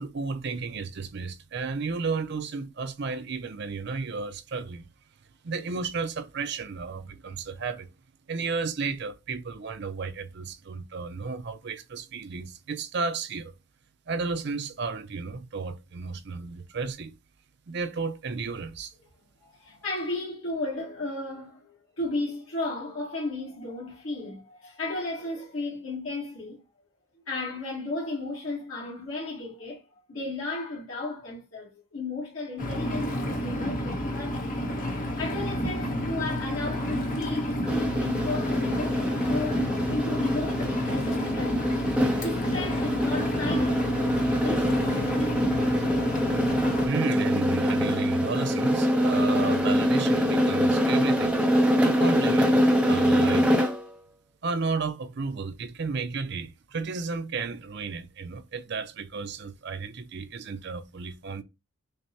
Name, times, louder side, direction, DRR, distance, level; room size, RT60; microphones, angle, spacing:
voice 1, 0.0-4.9 5.4-7.9 8.3-13.5 14.1-17.1 17.7-18.9 46.8-51.4 51.8-53.6 54.4-61.4, right 4 dB, 55° right, 0.5 m, -33 dB
voice 2, 19.4-26.6 27.3-29.8 30.1-34.6 35.2-41.7 42.2-43.9 44.4-44.7 45.0-45.7, left 2 dB, 75° left, 1.5 m, -34 dB
Engine, 32.6-46.9, equal, 40° left, 0.9 m, -30 dB
sound 1, 37.6-53.9, equal, 5° right, 0.5 m, -24 dB
6.4 x 2.2 x 2.8 m
head